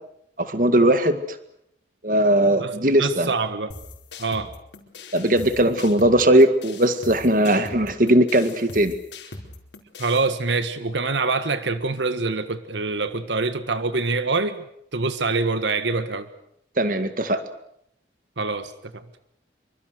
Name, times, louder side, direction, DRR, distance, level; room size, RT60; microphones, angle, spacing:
voice 1, 0.4-1.2 2.0-3.3 5.1-9.0 16.8-17.4, right 1 dB, 45° right, 10 dB, 1.9 m, -19 dB
voice 2, 2.6-3.7 4.2-4.5 10.0-14.6 14.9-16.3 18.4-19.0, right 3 dB, 80° right, 11 dB, 1.5 m, -25 dB
sound 1, 3.7-10.3, left 3 dB, 80° left, 4.5 m, -41 dB
27.0 x 24.5 x 6.7 m, 0.74 s
head